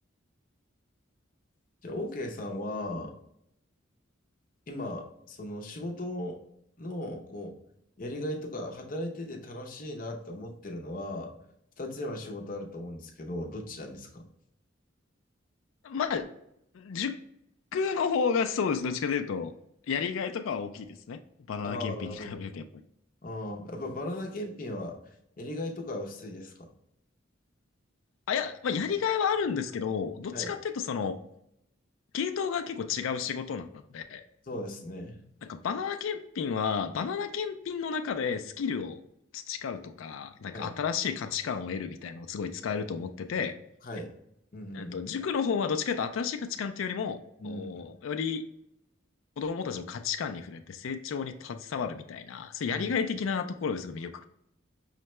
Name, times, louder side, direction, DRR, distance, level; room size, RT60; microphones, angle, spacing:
voice 1, 1.8-3.1 4.7-6.4 6.8-7.6 8.0-11.3 11.8-14.3 21.6-22.5 23.2-26.7 30.3-30.6 34.4-35.2 40.5-40.8 43.8-44.1 44.5-45.0 47.4-48.0 52.7-52.9, left 1 dB, 45° left, 2 dB, 0.6 m, -37 dB
voice 2, 15.8-16.3 16.7-17.1 17.7-19.5 19.9-21.2 21.5-22.7 28.3-31.2 32.1-34.2 35.5-39.0 39.3-43.5 44.7-47.2 47.4-48.4 49.4-54.2, left 6 dB, 85° left, 7 dB, 0.4 m, -31 dB
5.6 x 2.2 x 3.0 m, 0.76 s
head